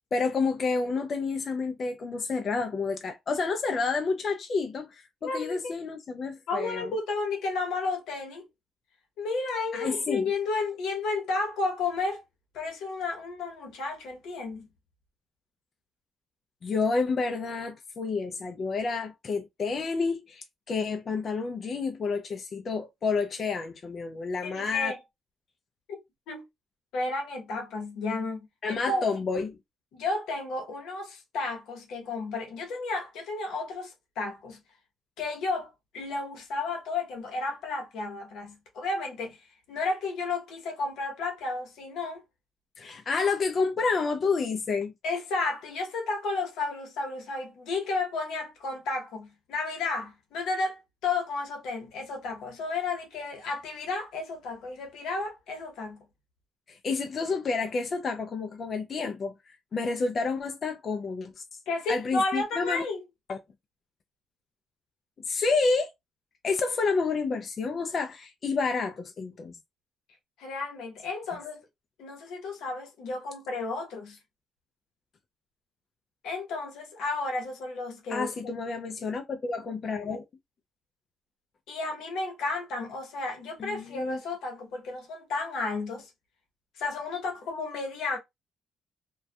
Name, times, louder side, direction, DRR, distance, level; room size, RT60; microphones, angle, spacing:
voice 1, 0.1-6.9 9.7-10.3 16.6-24.9 28.6-29.6 42.8-44.9 56.7-61.4 61.9-62.8 63.3-63.4 65.3-65.9 66.4-69.6 78.1-80.2 83.6-84.2, left 4 dB, 45° left, 0.4 m, -29 dB
voice 2, 5.2-5.7 6.5-8.5 9.2-12.2 12.5-14.7 24.4-25.0 25.9-26.0 26.3-26.4 26.9-29.0 29.9-34.6 35.2-39.4 39.7-42.2 45.0-56.0 61.7-63.0 70.4-71.6 72.0-74.2 76.2-78.3 81.7-86.1 86.8-88.2, left 3 dB, 85° left, 0.9 m, -32 dB
2.6 x 2.2 x 2.2 m
cardioid pair, 90°, 0 cm